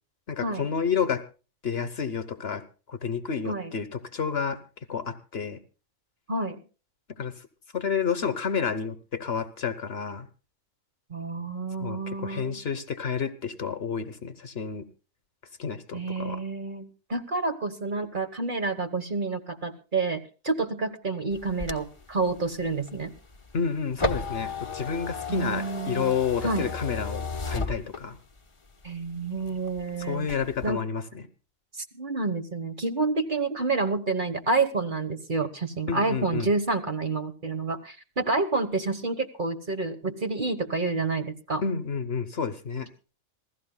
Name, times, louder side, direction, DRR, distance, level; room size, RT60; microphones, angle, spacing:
voice 1, 0.3-1.2 1.6-2.6 2.9-4.6 4.9-5.6 7.2-7.3 7.7-10.3 11.8-14.8 15.6-16.4 23.5-28.2 30.0-31.2 35.9-36.5 41.6-42.9, left 6 dB, 50° left, 11 dB, 1.1 m, -30 dB
voice 2, 6.3-6.6 11.1-12.6 15.9-23.1 25.3-26.2 26.4-26.7 28.8-30.3 30.6-30.8 31.9-41.6, right 3 dB, 40° right, 8 dB, 1.2 m, -29 dB
sound 1, 21.3-28.4 28.8-29.8 30.2-30.7, left 3 dB, 25° left, 0.9 m, -34 dB
27.0 x 16.0 x 2.2 m, 0.34 s
omnidirectional pair, 1.4 m